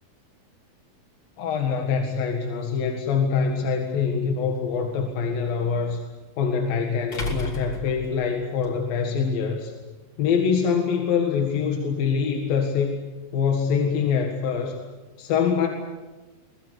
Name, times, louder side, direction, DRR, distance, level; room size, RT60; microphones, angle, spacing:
voice 1, 1.4-6.0 6.4-9.7 10.2-13.0 13.3-14.8 15.2-15.7, left 6 dB, 80° left, 3 dB, 3.6 m, -24 dB
sound 1, 3.3-3.4 6.0-6.1 7.1-8.7, left 1 dB, 35° left, 4.5 m, -32 dB
23.0 x 20.0 x 8.1 m, 1.2 s
omnidirectional pair, 4.1 m